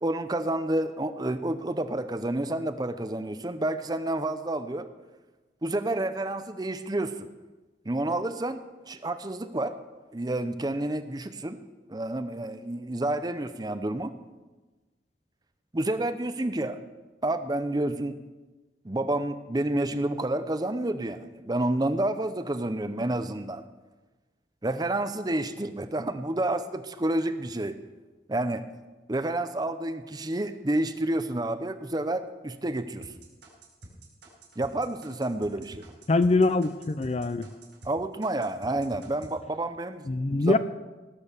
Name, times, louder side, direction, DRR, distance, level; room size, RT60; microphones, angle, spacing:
voice 1, 0.0-4.9 5.6-7.3 7.9-9.8 10.1-11.6 11.9-14.1 15.7-16.8 17.2-18.2 18.8-23.6 24.6-27.8 28.3-28.7 29.1-33.1 34.6-35.8 37.8-40.6, right 1 dB, 20° right, 11 dB, 0.6 m, -29 dB
sound 1, 33.0-37.9 38.2-39.3, right 1 dB, 85° right, 4.9 m, -48 dB
voice 2, 36.1-37.5 40.1-40.6, left 2 dB, 35° left, 12 dB, 0.5 m, -23 dB
18.5 x 7.7 x 6.7 m, 1.2 s
head